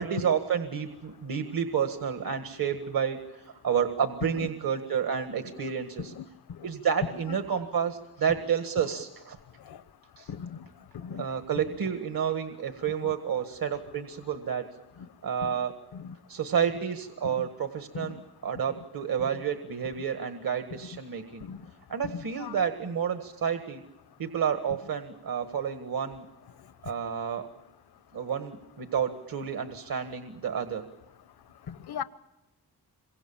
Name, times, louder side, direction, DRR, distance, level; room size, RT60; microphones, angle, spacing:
voice 1, 0.0-6.1 6.6-9.4 10.2-10.3 11.2-14.6 15.2-15.7 16.3-21.5 21.9-23.8 24.2-26.2 26.8-27.5 28.1-30.8, right 7 dB, 65° right, 8 dB, 1.8 m, -30 dB
voice 2, 10.3-10.6 10.9-11.2 13.0-13.1 15.4-15.5 15.9-16.1 17.2-17.5 17.9-18.2 21.5-21.6 22.0-22.5 31.7-32.0, left 7 dB, 80° left, 14 dB, 1.0 m, -38 dB
27.0 x 24.0 x 7.3 m, 0.95 s
cardioid pair, 70°, 38 cm